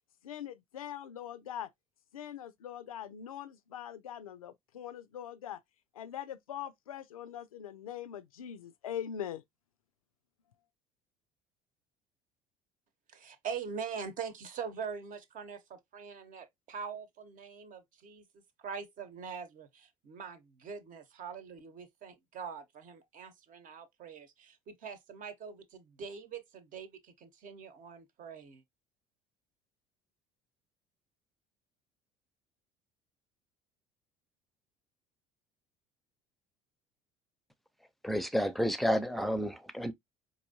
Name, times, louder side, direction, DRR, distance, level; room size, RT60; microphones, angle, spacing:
voice 1, 0.2-1.7 2.1-5.6 5.9-9.4, left 10 dB, 85° left, 0.4 m, -42 dB
voice 2, 13.1-28.6, right 6 dB, 50° right, 0.9 m, -43 dB
voice 3, 38.0-39.9, equal, ahead, 0.6 m, -30 dB
4.6 x 2.6 x 2.7 m
hypercardioid pair, 60°, 18 cm